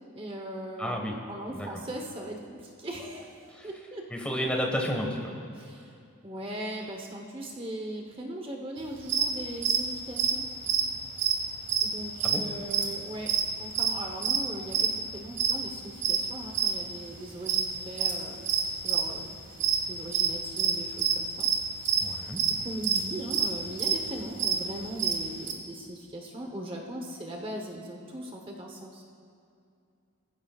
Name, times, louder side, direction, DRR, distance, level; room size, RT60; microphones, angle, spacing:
voice 1, 0.1-1.0 1.3-4.1 5.5-6.0 6.2-10.4 11.8-13.3 13.6-18.4 18.8-19.4 19.9-21.5 21.7-22.2 22.6-29.0, right 1 dB, 25° right, 1 dB, 1.0 m, -39 dB
voice 2, 0.8-1.2 1.5-1.7 3.5-3.7 4.1-5.3 12.2-12.4 22.0-22.4, equal, 5° left, 0 dB, 1.4 m, -31 dB
sound 1, 9.0-9.3 9.6-9.8 10.1-11.9 12.2-12.4 12.7-13.0 13.3-13.9 14.2-14.4 14.7-15.5 16.0-16.8 17.1-19.2 19.5-19.8 20.0-25.5, right 7 dB, 50° right, 1.7 m, -26 dB
20.5 x 15.0 x 2.4 m, 2.5 s
head